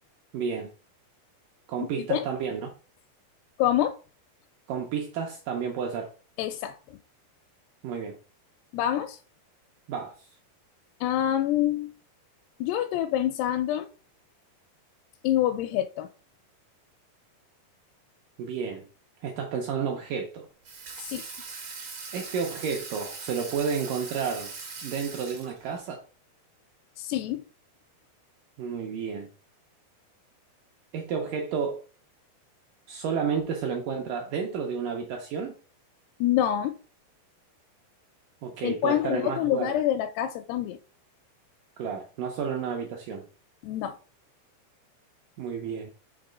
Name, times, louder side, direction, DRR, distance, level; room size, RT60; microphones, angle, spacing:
voice 1, 0.3-0.7 1.7-2.7 4.7-6.1 7.8-8.2 9.9-10.3 18.4-18.9 19.2-20.5 22.1-24.5 24.8-26.0 28.6-29.3 30.9-31.8 32.9-35.5 38.4-39.7 41.8-43.3 45.4-45.9, right 6 dB, 80° right, 2.0 m, -31 dB
voice 2, 1.8-2.3 3.6-4.0 6.4-6.8 8.7-9.2 11.0-11.9 12.6-13.9 15.2-16.1 21.0-21.2 27.0-27.4 36.2-36.7 38.6-40.8 43.6-44.0, left 11 dB, 85° left, 2.6 m, -26 dB
Water tap faucet / Sink (filling or washing), 20.6-25.9, right 4 dB, 65° right, 1.3 m, -40 dB
6.0 x 3.3 x 5.0 m
omnidirectional pair, 4.7 m